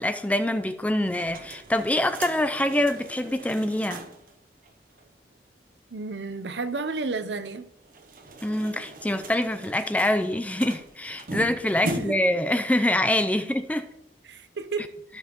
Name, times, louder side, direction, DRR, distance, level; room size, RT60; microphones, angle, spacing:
voice 1, 0.0-4.1 8.4-13.9, left 1 dB, 10° left, 0.4 m, -25 dB
sound 1, 1.1-4.3 4.6-4.7 5.0-5.1 7.8-12.4, right 1 dB, 50° right, 0.8 m, -39 dB
voice 2, 5.9-7.7 11.8-12.2 14.2-14.9, right 3 dB, 85° right, 0.7 m, -32 dB
15.5 x 5.3 x 3.0 m
head